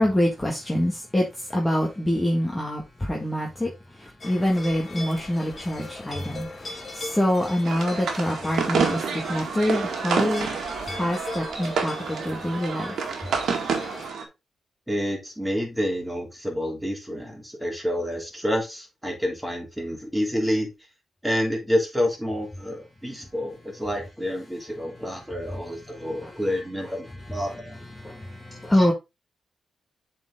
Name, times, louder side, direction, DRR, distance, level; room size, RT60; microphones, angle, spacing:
voice 1, 0.0-10.5 10.9-13.0 25.9-26.5 27.3-28.9, left 1 dB, 15° left, 1.8 m, -26 dB
sound 1, 4.2-14.1, left 2 dB, 35° left, 2.2 m, -39 dB
sound 2, 7.6-14.2, right 5 dB, 80° right, 1.9 m, -28 dB
voice 2, 14.9-20.7 21.2-27.7 28.7-28.9, equal, 5° right, 3.4 m, -28 dB
7.5 x 4.6 x 3.7 m
cardioid pair, 80°, 0 cm